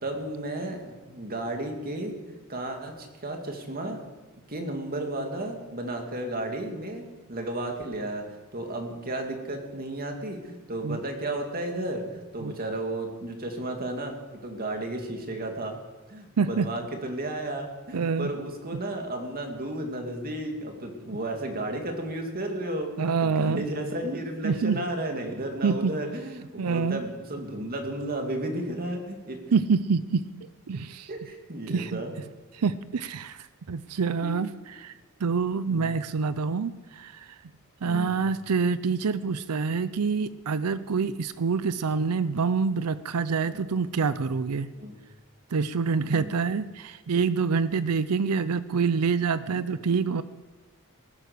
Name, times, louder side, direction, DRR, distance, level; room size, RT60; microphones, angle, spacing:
voice 1, 0.0-4.0 4.5-15.7 16.1-29.4 31.1-32.1 34.2-34.3 35.7-36.0 37.8-38.1 43.5-43.6 44.7-45.0 46.0-46.3, right 1 dB, 40° right, 3 dB, 2.4 m, -33 dB
voice 2, 16.4-16.7 17.9-18.3 23.0-23.6 24.4-24.8 25.6-25.9 26.6-27.0 29.5-30.3 30.7-31.1 31.7-32.0 32.5-34.5 34.8-34.9 35.2-37.4 37.8-44.7 45.5-50.2, right 5 dB, 85° right, 14 dB, 0.5 m, -26 dB
18.5 x 10.0 x 6.7 m, 1.3 s
head